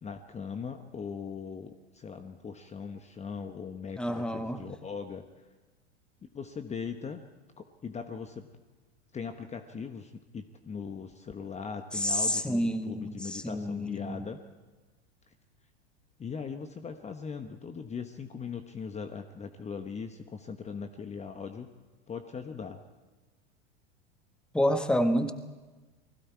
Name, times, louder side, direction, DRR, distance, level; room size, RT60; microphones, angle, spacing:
voice 1, 0.0-5.2 6.3-7.3 7.6-8.5 9.1-14.4 16.2-21.7 22.1-22.8, left 6 dB, 20° left, 7 dB, 1.2 m, -40 dB
voice 2, 4.0-4.6 11.9-14.2 24.5-25.3, equal, 5° left, 8 dB, 1.4 m, -29 dB
29.5 x 20.0 x 4.7 m, 1.3 s
hypercardioid pair, 90°, 33 cm